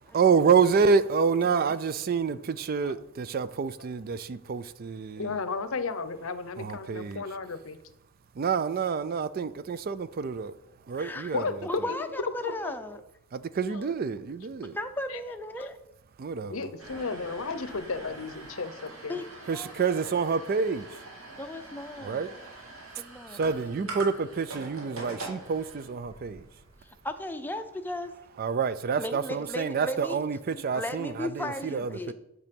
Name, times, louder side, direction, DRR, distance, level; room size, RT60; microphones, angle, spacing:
voice 1, 0.1-5.3 6.6-7.2 8.4-10.5 10.9-11.7 13.3-14.8 16.2-16.7 19.5-21.0 22.0-22.3 23.3-26.5 28.4-32.1, right 5 dB, 40° right, 0.3 m, -28 dB
voice 2, 5.2-7.8 11.3-11.5 11.9-12.0 12.4-12.7 13.6-13.9 15.1-15.2 15.6-15.7 16.5-19.2, left 4 dB, 65° left, 0.7 m, -34 dB
voice 3, 11.0-11.3 11.6-13.0 14.6-15.8 19.1-19.2 19.5-20.0 21.3-22.3 23.0-23.9 26.8-28.1 29.0-30.2 30.5-32.1, left 1 dB, 10° left, 0.5 m, -36 dB
sound 1, 16.8-27.1, right 2 dB, 70° right, 2.3 m, -44 dB
8.3 x 6.1 x 5.2 m
head